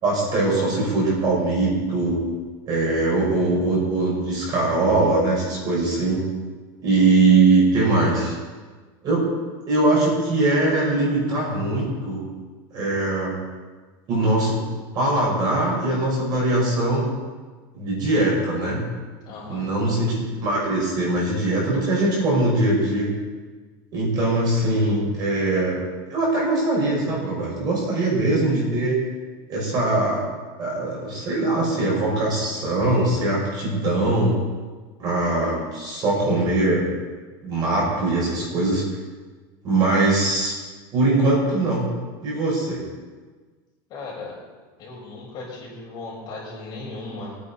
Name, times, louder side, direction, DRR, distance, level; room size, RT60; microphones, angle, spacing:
voice 1, 0.0-2.2 2.7-6.3 6.8-8.4 9.0-9.3 9.7-12.2 12.7-13.4 14.1-14.6 14.9-17.1 17.7-18.8 19.5-23.1 23.9-25.8 26.1-29.0 29.5-30.2 30.6-34.4 35.0-36.8 37.4-38.8 39.6-40.5 40.9-41.9 42.2-42.8, right 2 dB, 35° right, -3 dB, 5.6 m, -21 dB
voice 2, 19.3-19.7 43.9-44.3 44.8-47.4, left 3 dB, 35° left, -4 dB, 5.5 m, -36 dB
22.5 x 9.7 x 4.3 m, 1.4 s
cardioid pair, 170°, 12 cm